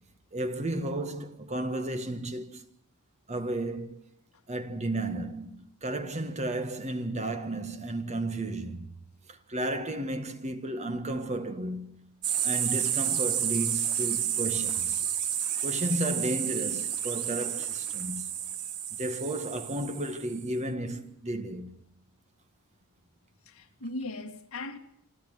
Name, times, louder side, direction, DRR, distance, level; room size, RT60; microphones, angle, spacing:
voice 1, 0.3-2.6 3.3-4.1 4.5-8.9 9.3-12.0 12.4-15.0 15.6-18.3 18.9-21.7, right 1 dB, 30° right, 1.6 m, -33 dB
sound 1, 12.2-20.5, right 9 dB, 90° right, 1.7 m, -30 dB
voice 2, 23.5-24.8, left 2 dB, 70° left, 2.0 m, -39 dB
28.5 x 12.0 x 9.2 m
head